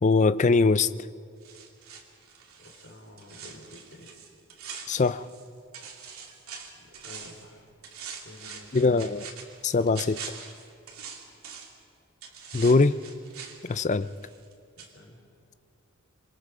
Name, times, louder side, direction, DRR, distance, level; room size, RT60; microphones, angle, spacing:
voice 1, 0.0-0.9 4.9-5.3 8.7-9.3 9.6-10.4 12.5-13.0 13.6-14.1, left 3 dB, 35° left, 14 dB, 0.5 m, -22 dB
sound 1, 1.4-5.5 5.7-7.5 7.8-11.8 12.2-14.5 14.8-14.9, right 6 dB, 90° right, 2.9 m, -43 dB
voice 2, 2.6-4.1 6.7-7.7 8.2-8.9 14.8-15.2, left 1 dB, 60° left, 0 dB, 4.5 m, -50 dB
26.5 x 25.0 x 5.1 m, 2.4 s
head